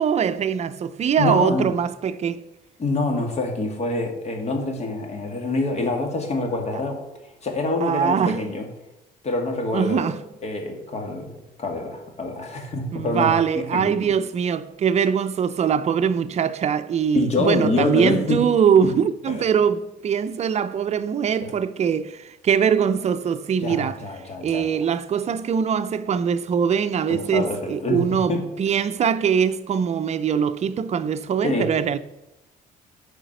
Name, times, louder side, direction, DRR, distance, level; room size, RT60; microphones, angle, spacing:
voice 1, 0.0-2.4 7.8-8.4 9.7-10.2 12.9-24.0 24.4-32.0, right 7 dB, 40° right, 0.6 m, -22 dB
voice 2, 1.2-1.7 2.8-7.0 7.4-8.7 9.2-10.1 10.4-11.3 11.6-14.0 17.1-18.5 18.8-18.9 19.3-19.4 21.4-21.5 23.6-24.7 27.1-28.5 31.4-31.7, left 2 dB, 40° left, 2.3 m, -26 dB
9.1 x 5.0 x 6.6 m
cardioid pair, 110°, 17 cm